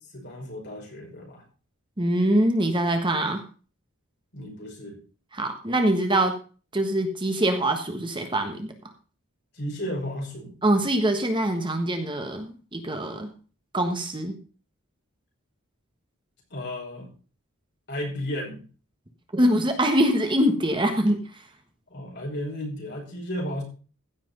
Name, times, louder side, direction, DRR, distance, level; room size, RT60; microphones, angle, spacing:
voice 1, 0.1-1.4 4.3-5.0 9.5-10.5 16.5-17.1 17.9-18.6 21.9-23.6, left 1 dB, 55° left, -1 dB, 5.8 m, -33 dB
voice 2, 2.0-3.4 5.3-6.3 6.7-8.7 10.6-13.3 13.7-14.3 19.3-21.2, right 1 dB, 20° right, 5 dB, 1.4 m, -23 dB
15.5 x 6.0 x 5.4 m, 0.37 s
head